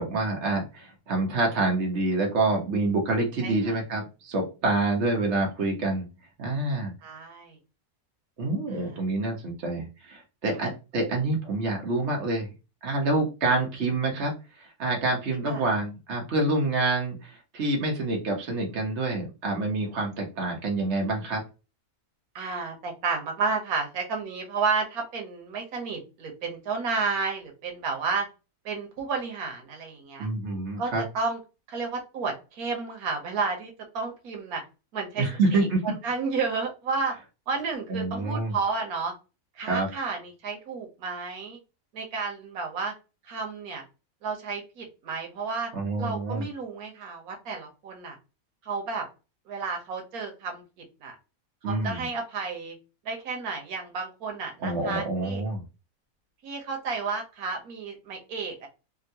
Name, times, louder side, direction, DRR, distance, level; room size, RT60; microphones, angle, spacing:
voice 1, 0.0-6.1 6.4-6.9 8.4-12.5 12.8-14.3 14.6-21.4 30.2-31.0 35.2-35.9 37.9-38.5 39.6-39.9 45.7-46.4 51.6-52.1 54.6-55.6, right 2 dB, 55° right, 0 dB, 1.3 m, -27 dB
voice 2, 3.4-3.7 7.0-7.6 8.7-9.0 10.5-10.7 15.4-15.6 22.3-28.3 28.6-30.3 30.8-31.4 31.7-34.6 34.9-37.2 37.5-39.1 39.6-41.6 41.9-42.9 43.2-43.8 44.2-45.7 46.0-48.2 48.6-49.1 49.5-50.6 51.0-51.2 51.7-52.7 53.0-55.4 56.4-58.7, right 4 dB, 85° right, 2 dB, 1.4 m, -32 dB
3.5 x 2.2 x 2.7 m, 0.29 s
omnidirectional pair, 1.5 m